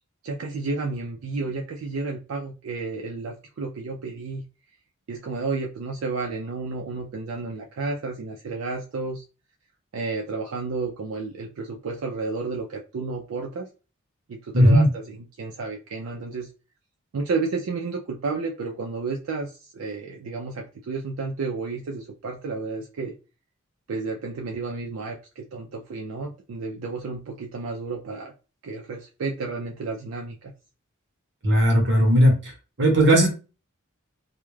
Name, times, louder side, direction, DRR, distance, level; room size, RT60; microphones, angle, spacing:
voice 1, 0.2-4.5 5.1-9.2 9.9-13.7 14.3-16.5 17.1-23.1 23.9-28.3 28.6-30.5, right 3 dB, 85° right, 1 dB, 0.4 m, -31 dB
voice 2, 14.5-14.9 31.4-32.5 32.8-33.3, equal, 60° right, 2 dB, 1.0 m, -17 dB
2.3 x 2.1 x 3.1 m, 0.32 s
head